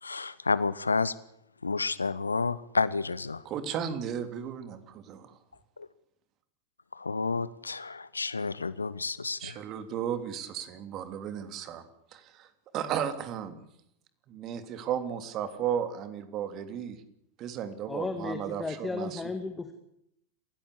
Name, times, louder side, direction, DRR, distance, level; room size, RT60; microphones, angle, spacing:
voice 1, 0.0-1.1 1.6-3.4 5.8-5.9 6.9-9.6, left 4 dB, 80° left, 19 dB, 0.9 m, -30 dB
voice 2, 3.4-5.4 9.4-11.8 12.1-12.5 12.7-13.6 14.3-17.0 17.4-19.2, right 9 dB, 35° right, 10 dB, 3.1 m, -34 dB
voice 3, 17.9-19.7, left 3 dB, 10° left, 7 dB, 2.2 m, -34 dB
28.5 x 16.0 x 8.5 m, 0.77 s
figure-of-eight pair, 90°, 0 cm